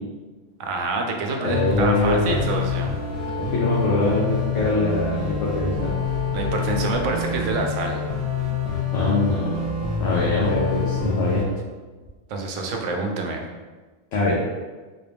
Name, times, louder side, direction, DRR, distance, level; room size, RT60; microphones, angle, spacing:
voice 1, 0.6-3.0 6.3-8.0 12.3-13.4, right 3 dB, 80° right, 2 dB, 0.9 m, -27 dB
voice 2, 1.4-2.4 3.5-6.0 8.9-9.6 10.0-11.4 14.1-14.3, left 2 dB, 75° left, -5 dB, 1.0 m, -23 dB
sound 1, 1.5-11.4, left 5 dB, 35° left, 0.7 m, -26 dB
3.8 x 2.3 x 3.4 m, 1.3 s
omnidirectional pair, 1.3 m